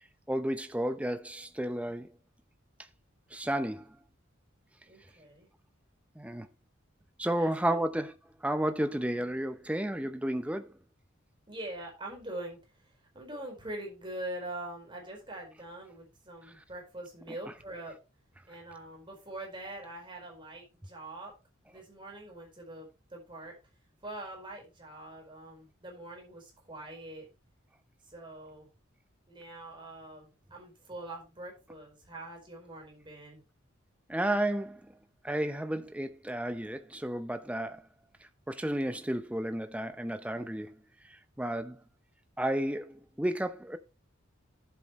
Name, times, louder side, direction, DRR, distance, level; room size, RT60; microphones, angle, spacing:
voice 1, 0.3-2.1 3.3-4.0 6.2-6.5 7.2-8.1 8.4-10.7 34.1-34.9 35.2-37.8 38.5-40.7 41.1-41.8 42.4-43.8, right 1 dB, 5° right, 0.8 m, -32 dB
voice 2, 4.9-5.5 7.3-7.8 11.5-12.6 12.8-18.0 18.5-21.3 21.7-23.5 24.0-27.3 28.1-28.7 29.3-33.4, right 1 dB, 25° right, 4.5 m, -44 dB
11.0 x 8.0 x 3.1 m
head